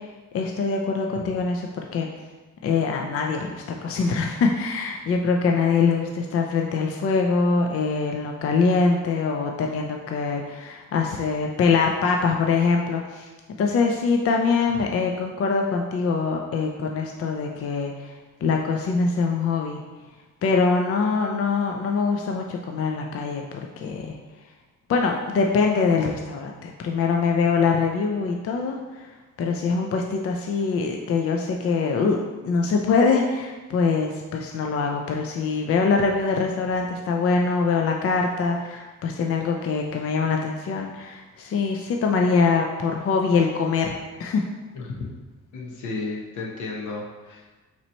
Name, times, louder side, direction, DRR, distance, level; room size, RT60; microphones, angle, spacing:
voice 1, 0.3-2.1 2.6-13.3 13.6-18.1 18.4-19.8 20.4-24.2 24.9-29.1 29.4-32.2 32.4-44.4, left 4 dB, 50° left, 2 dB, 0.5 m, -23 dB
voice 2, 44.7-45.1 45.5-47.6, left 3 dB, 80° left, -1 dB, 1.0 m, -33 dB
4.0 x 3.0 x 4.3 m, 1.2 s
cardioid pair, 90°, 30 cm